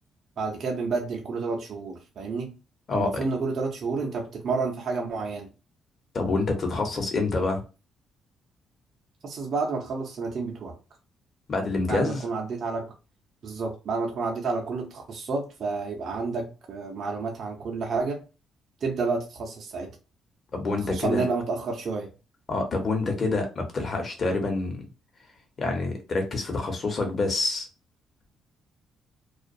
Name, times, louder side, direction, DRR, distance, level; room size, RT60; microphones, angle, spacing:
voice 1, 0.4-2.5 2.9-5.5 9.2-10.8 11.9-12.9 13.4-18.2 18.8-19.9 20.9-22.1, right 4 dB, 55° right, 0.6 m, -30 dB
voice 2, 2.9-3.2 6.1-7.6 11.5-12.2 20.5-21.2 22.5-24.8 25.6-27.7, left 3 dB, 45° left, 0.9 m, -27 dB
2.4 x 2.2 x 2.6 m
cardioid pair, 90°, 0 cm